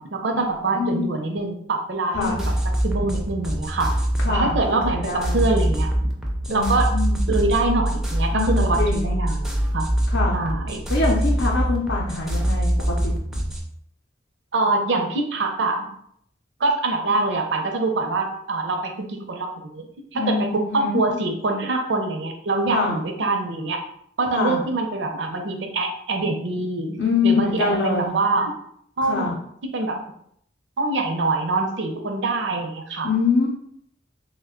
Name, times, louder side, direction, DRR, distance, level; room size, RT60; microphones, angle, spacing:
voice 1, 0.0-2.5 2.8-3.9 4.3-5.9 6.5-6.9 7.3-9.5 9.7-9.9 10.3-10.8 14.5-15.8 16.6-19.9 20.1-23.8 24.2-27.0 27.2-28.5 29.0-29.3 29.7-30.0 30.8-33.1, right 2 dB, 70° right, 3 dB, 0.5 m, -24 dB
sound 1, 2.1-13.6, right 1 dB, 5° right, 0.4 m, -24 dB
voice 2, 4.2-5.5 6.5-7.2 8.3-9.2 10.1-10.4 10.9-13.1 20.1-21.0 22.7-23.0 24.3-24.6 27.0-28.1 29.1-29.3 33.0-33.5, left 4 dB, 75° left, -3 dB, 0.6 m, -24 dB
3.2 x 2.2 x 3.6 m, 0.69 s
head